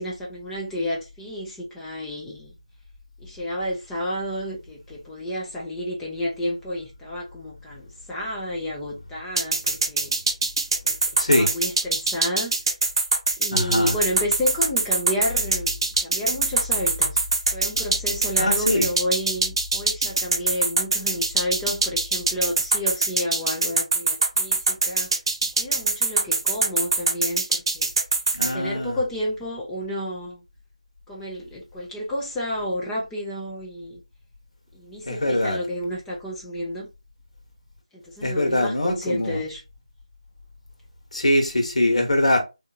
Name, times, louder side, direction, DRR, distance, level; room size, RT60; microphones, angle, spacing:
voice 1, 0.0-2.5 3.2-10.1 10.8-11.0 11.3-12.5 13.4-17.2 17.5-25.1 25.6-27.9 28.4-30.4 31.1-34.0 34.7-36.9 37.9-39.6, equal, 5° left, 0.5 m, -31 dB
sound 1, 9.4-28.5, right 3 dB, 40° right, 0.7 m, -22 dB
voice 2, 11.2-11.5 13.5-13.9 18.4-18.9 28.3-29.0 35.0-35.6 38.2-39.4 41.1-42.4, left 1 dB, 65° left, 1.3 m, -22 dB
3.6 x 2.6 x 2.8 m
figure-of-eight pair, 160°, 4 cm